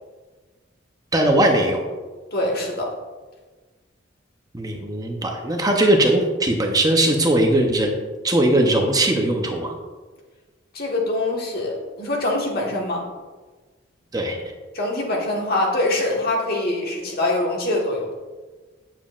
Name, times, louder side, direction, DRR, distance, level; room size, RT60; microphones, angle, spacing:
voice 1, 1.1-1.8 4.5-7.9 8.2-9.7 14.1-14.4, right 1 dB, 20° right, 2 dB, 0.7 m, -19 dB
voice 2, 2.3-2.9 10.7-13.0 14.7-18.1, left 2 dB, 50° left, -1 dB, 1.5 m, -24 dB
8.9 x 7.3 x 2.5 m, 1.3 s
head